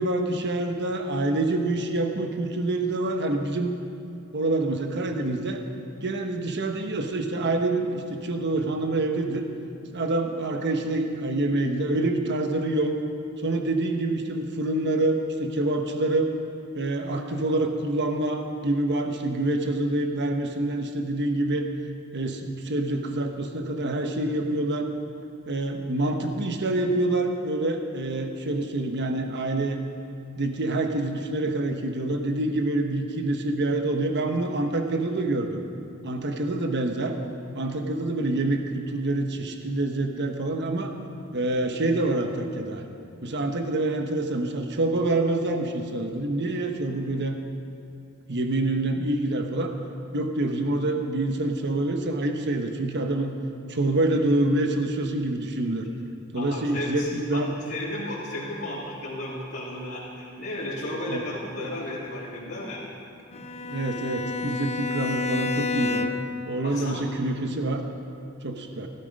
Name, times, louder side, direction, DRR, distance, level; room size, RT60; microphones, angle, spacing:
voice 1, 0.0-3.7 4.3-5.6 6.0-9.5 9.9-12.9 13.4-16.3 16.7-21.7 22.1-24.9 25.5-29.8 30.4-35.6 36.0-37.1 37.5-40.9 41.3-42.8 43.2-47.4 48.3-49.7 50.1-53.4 53.7-55.9 56.3-57.5 61.1-61.2 63.7-66.1 66.5-67.8 68.4-68.9, right 2 dB, 55° right, 5 dB, 1.2 m, -26 dB
voice 2, 56.3-62.8 63.3-63.4 66.6-67.0, left 1 dB, 50° left, -8 dB, 2.7 m, -34 dB
Bowed string instrument, 63.3-66.4, left 4 dB, 30° left, 0.5 m, -29 dB
16.0 x 13.0 x 5.3 m, 2.5 s
head